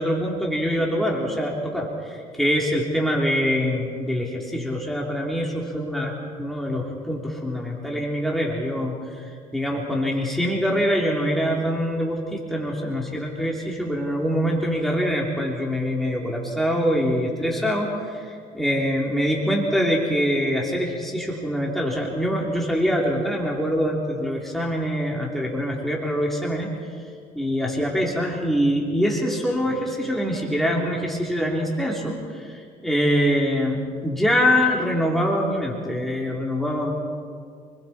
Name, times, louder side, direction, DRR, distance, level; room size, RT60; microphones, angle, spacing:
voice 1, 0.0-6.1 6.4-26.7 27.3-36.9, equal, ahead, -2 dB, 3.1 m, -24 dB
29.0 x 21.0 x 4.3 m, 2.2 s
cardioid pair, 110°, 17 cm